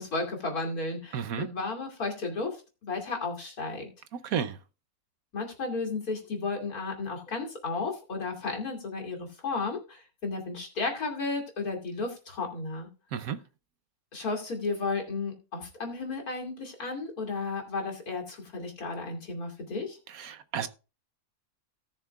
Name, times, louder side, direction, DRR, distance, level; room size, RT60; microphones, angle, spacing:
voice 1, 0.0-2.6 2.8-3.9 5.3-12.9 14.1-20.0, left 3 dB, 75° left, 3.1 m, -33 dB
voice 2, 1.1-1.5 4.2-4.6 13.1-13.4 20.1-20.7, right 8 dB, 70° right, 1.2 m, -32 dB
18.0 x 6.6 x 2.4 m
omnidirectional pair, 1.6 m